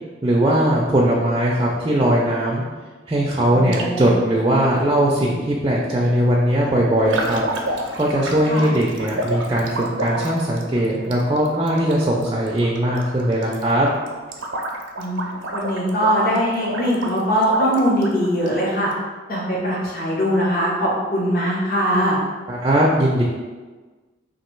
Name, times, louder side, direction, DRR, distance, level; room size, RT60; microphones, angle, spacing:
voice 1, 0.2-2.6 3.1-7.4 7.7-13.9 22.5-23.2, right 1 dB, 20° right, -3 dB, 0.4 m, -19 dB
voice 2, 3.5-4.0 8.5-8.7 15.0-18.9 19.3-22.2, equal, 50° left, -5 dB, 0.8 m, -21 dB
sound 1, 3.7-4.1 5.2-5.3 7.0-18.9, right 1 dB, 90° right, 0.6 m, -30 dB
3.0 x 2.6 x 4.4 m, 1.3 s
head